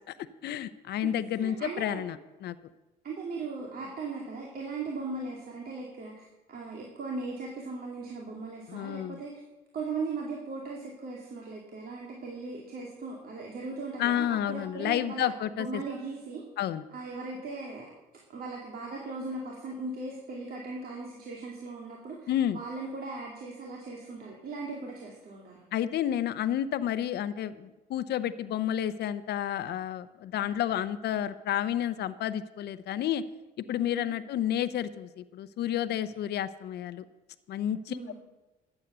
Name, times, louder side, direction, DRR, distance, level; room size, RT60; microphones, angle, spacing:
voice 1, 0.4-2.6 8.7-9.2 14.0-15.8 16.6-16.8 22.3-22.6 25.7-33.2 33.6-37.0 37.5-38.0, left 11 dB, 65° left, 13 dB, 0.7 m, -30 dB
voice 2, 1.4-2.0 3.0-9.4 9.7-16.4 16.9-17.9 18.3-25.6 33.9-34.1 37.9-38.2, right 3 dB, 55° right, -1 dB, 2.6 m, -38 dB
12.0 x 8.2 x 8.0 m, 1.1 s
cardioid pair, 85°, 18 cm